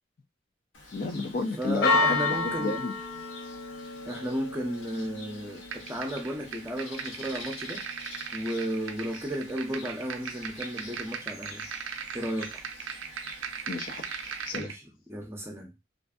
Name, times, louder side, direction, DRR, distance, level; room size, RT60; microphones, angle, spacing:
Church bell, 0.7-14.6, left 3 dB, 80° left, 0.7 m, -35 dB
voice 1, 0.9-3.0 13.7-14.7, left 2 dB, 45° left, 0.4 m, -32 dB
voice 2, 1.6-2.8 4.0-7.8 8.3-11.7 12.1-12.6 14.5-15.7, equal, 15° right, 0.5 m, -34 dB
sound 1, 5.7-14.7, right 7 dB, 90° right, 0.4 m, -39 dB
2.5 x 2.5 x 2.3 m
head